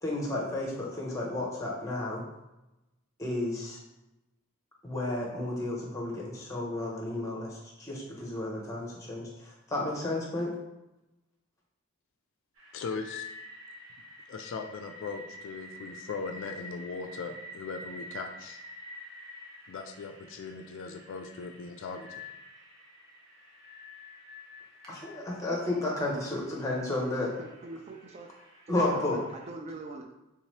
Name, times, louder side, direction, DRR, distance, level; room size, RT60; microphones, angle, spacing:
voice 1, 0.0-2.2 3.2-3.8 4.8-10.6 24.9-27.3 28.7-29.2, left 2 dB, 15° left, -3 dB, 0.9 m, -32 dB
sound 1, 12.6-29.5, left 2 dB, 65° right, 1.0 m, -48 dB
voice 2, 12.7-13.2 14.3-18.6 19.7-22.1, left 4 dB, 60° left, 6 dB, 0.3 m, -39 dB
voice 3, 27.4-28.3 28.7-30.1, right 2 dB, 30° right, 3 dB, 0.3 m, -43 dB
3.5 x 2.8 x 3.1 m, 0.96 s
head